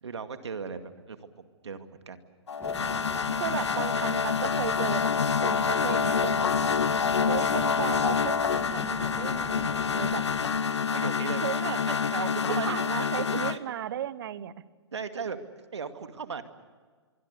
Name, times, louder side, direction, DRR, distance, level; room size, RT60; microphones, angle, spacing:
voice 1, 0.0-2.2 2.6-3.5 10.7-11.4 11.8-12.8 13.5-13.6 14.9-15.4 15.7-16.4, right 5 dB, 75° right, 8 dB, 2.2 m, -37 dB
sound 1, 2.5-13.6, left 6 dB, 75° left, 1.1 m, -27 dB
voice 2, 2.5-2.9 3.4-5.1 5.4-6.7 7.3-10.5 11.4-11.8 12.5-14.5, right 11 dB, 55° right, 17 dB, 1.1 m, -35 dB
sound 2, 2.6-10.6, left 5 dB, 15° left, 2.5 m, -42 dB
24.5 x 24.5 x 6.8 m, 1.5 s
hypercardioid pair, 125°, 14 cm